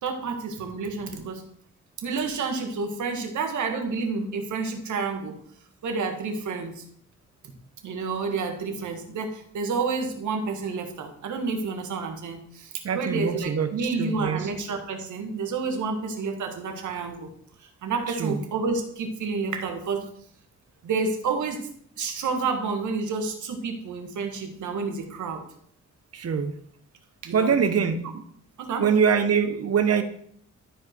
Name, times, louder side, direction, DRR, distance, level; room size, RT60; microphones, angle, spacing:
voice 1, 0.0-1.4 2.0-5.4 5.8-6.8 7.8-17.3 17.6-20.1 20.8-21.7 22.0-25.4 27.2-27.5 28.6-28.8, right 4 dB, 85° right, 4 dB, 1.7 m, -29 dB
voice 2, 12.8-14.5 18.1-18.4 26.1-26.5 27.3-28.0 28.8-30.0, right 6 dB, 55° right, 9 dB, 1.2 m, -23 dB
13.0 x 5.1 x 4.5 m, 0.64 s
cardioid pair, 100°, 29 cm